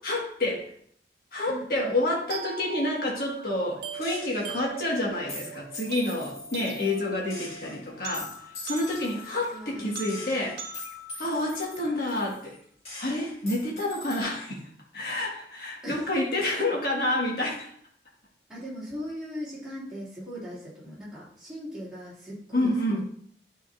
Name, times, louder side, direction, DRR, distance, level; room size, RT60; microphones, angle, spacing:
voice 1, 0.0-0.7 1.3-8.3 8.6-10.6 11.2-12.5 13.0-14.6 14.9-17.7 22.5-23.0, left 1 dB, 55° left, -3 dB, 1.7 m, -28 dB
voice 2, 1.5-1.9 9.5-10.0 15.8-16.2 18.5-23.1, equal, 5° right, -10 dB, 2.6 m, -39 dB
sound 1, 2.3-12.3, right 4 dB, 70° right, 0.8 m, -41 dB
Gunshot gunfire, 4.0-4.6 5.3-7.0 7.3-9.5 10.1-12.6 12.8-14.2, left 2 dB, 35° left, 2.1 m, -43 dB
10.0 x 3.8 x 2.6 m, 0.63 s
head